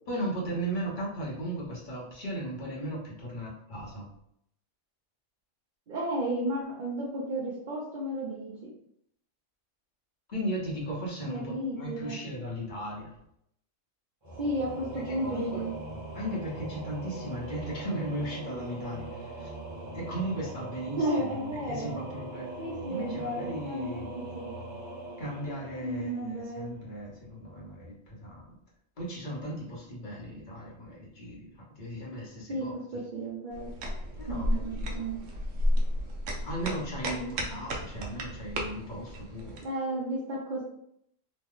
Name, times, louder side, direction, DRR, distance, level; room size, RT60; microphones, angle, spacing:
voice 1, 0.1-4.1 10.3-13.1 15.1-15.6 16.1-19.5 19.9-22.5 22.8-24.1 25.2-28.4 29.0-33.0 34.2-35.0 36.4-39.6, right 1 dB, 45° left, -4 dB, 0.9 m, -36 dB
voice 2, 5.9-8.5 11.3-12.2 14.4-15.7 21.0-22.0 22.6-23.9 24.3-24.5 25.8-26.7 32.5-33.7 34.3-35.2 37.1-37.3 39.6-40.6, right 1 dB, 50° right, -5 dB, 0.7 m, -33 dB
Singing / Musical instrument, 14.2-26.8, right 1 dB, 25° right, 0.9 m, -41 dB
sound 1, 33.5-39.6, equal, 75° right, 1.0 m, -32 dB
3.1 x 2.1 x 3.6 m, 0.74 s
omnidirectional pair, 1.3 m